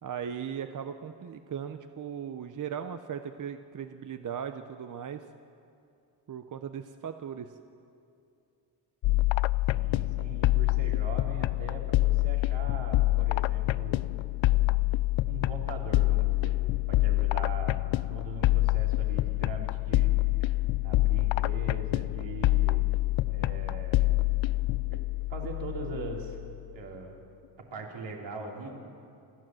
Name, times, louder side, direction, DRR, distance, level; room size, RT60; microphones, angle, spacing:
voice 1, 0.0-5.3 6.3-7.5, right 8 dB, 45° right, 8 dB, 0.7 m, -38 dB
sound 1, 9.0-26.6, left 19 dB, 85° left, 0.5 m, -27 dB
voice 2, 9.7-14.1 15.3-16.6 16.9-20.1 20.4-20.5 20.8-22.9 23.3-24.1 24.9-25.0 25.3-26.4 26.7-27.1 27.7-28.7, right 3 dB, 75° right, 0 dB, 3.3 m, -41 dB
28.0 x 12.0 x 7.7 m, 2.5 s
wide cardioid pair, 135°, 44 cm